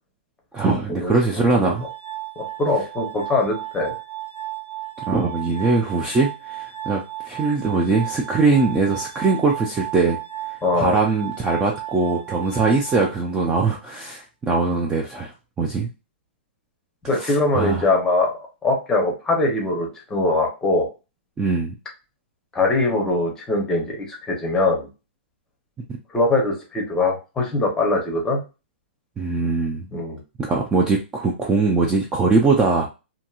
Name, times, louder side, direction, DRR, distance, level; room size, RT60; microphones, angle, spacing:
voice 1, 0.5-1.9 5.1-10.2 10.7-15.3 15.6-15.9 17.1-17.9 21.4-21.7 29.2-29.9 30.4-32.9, right 3 dB, 10° right, -1 dB, 0.3 m, -21 dB
Glass, 1.7-13.7, right 15 dB, 80° right, 1.4 m, -34 dB
voice 2, 2.4-3.9 10.6-11.0 17.1-20.9 22.5-24.9 26.1-28.4 29.9-30.2, left 2 dB, 10° left, 1 dB, 0.7 m, -22 dB
2.8 x 2.6 x 2.3 m, 0.29 s
hypercardioid pair, 155°, 6 cm